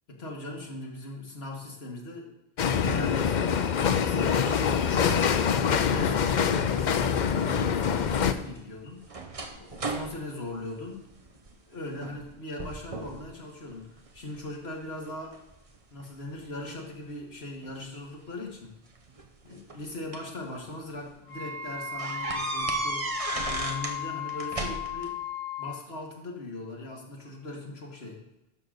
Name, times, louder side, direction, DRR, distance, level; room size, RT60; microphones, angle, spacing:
voice 1, 0.1-2.3 2.7-5.5 5.9-9.0 9.5-11.0 11.7-13.9 14.1-15.4 15.9-18.7 19.4-23.1 23.4-25.2 25.6-28.2, left 1 dB, 75° left, 0 dB, 2.1 m, -39 dB
sound 1, 2.6-8.3, left 7 dB, 55° left, 0.6 m, -25 dB
sound 2, 8.1-11.5 11.9-12.3 12.6-13.3 13.7-14.4 15.0-16.5 17.6-17.7 19.0-20.4 20.9-21.0 21.3-21.4 22.0-24.0 24.3-25.1, right 2 dB, 35° right, 0.9 m, -35 dB
Wind instrument woodwind instrument, 21.3-25.8, left 6 dB, 20° left, 1.0 m, -35 dB
11.0 x 3.9 x 6.5 m, 0.87 s
omnidirectional pair, 1.1 m